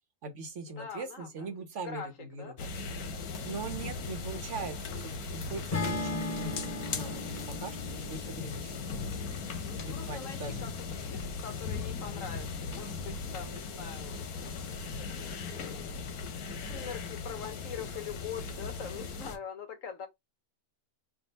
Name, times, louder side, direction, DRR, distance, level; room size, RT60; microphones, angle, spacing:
voice 1, 0.2-2.6 3.4-6.6 6.9-7.2 7.6-8.7 9.8-10.6, right 4 dB, 60° right, 1.1 m, -41 dB
voice 2, 0.8-1.5 1.8-2.1 2.4-2.7 3.1-3.5 9.6-10.7 11.0-16.0 16.6-20.1, left 7 dB, 60° left, 1.3 m, -44 dB
sound 1, 2.6-19.4, left 4 dB, 85° left, 1.3 m, -38 dB
Acoustic guitar / Strum, 5.7-9.9, left 2 dB, 40° left, 0.5 m, -38 dB
3.4 x 2.6 x 4.0 m
omnidirectional pair, 1.6 m